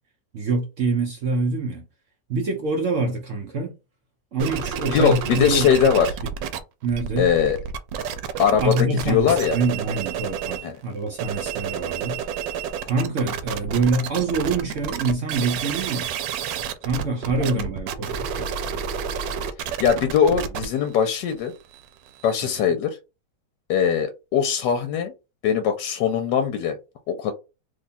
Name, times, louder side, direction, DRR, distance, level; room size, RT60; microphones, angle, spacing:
voice 1, 0.3-1.9 2.3-3.8 4.3-6.0 6.8-7.3 8.6-12.3 12.8-16.1 16.8-18.5 22.4-22.5, right 3 dB, 65° right, 0.8 m, -25 dB
sound 1, 4.4-6.6 6.8-10.7 11.1-22.6, right 7 dB, 85° right, 1.3 m, -30 dB
voice 2, 4.9-6.1 7.2-7.6 8.4-9.6 10.6-10.8 17.5-17.6 19.8-21.5 22.2-23.0 23.7-25.1 25.4-26.8 27.1-27.3, left 8 dB, 75° left, 1.2 m, -21 dB
3.0 x 2.3 x 4.0 m
omnidirectional pair, 1.9 m